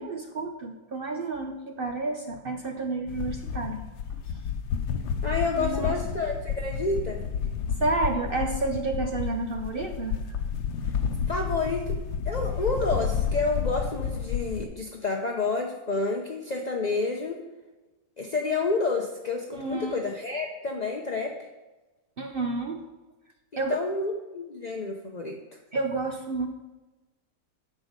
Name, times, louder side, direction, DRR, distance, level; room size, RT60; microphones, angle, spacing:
voice 1, 0.0-3.8 4.1-4.2 5.6-6.0 7.8-10.4 19.5-20.0 22.2-22.8 23.6-23.8 25.7-26.5, right 3 dB, 70° right, 5 dB, 0.5 m, -30 dB
sound 1, 3.1-14.7, left 6 dB, 90° left, 1.5 m, -31 dB
voice 2, 5.2-7.2 11.3-12.0 12.3-17.4 18.2-21.3 23.5-25.4, left 3 dB, 40° left, 0 dB, 0.6 m, -29 dB
10.5 x 7.4 x 5.2 m, 1.1 s
omnidirectional pair, 2.0 m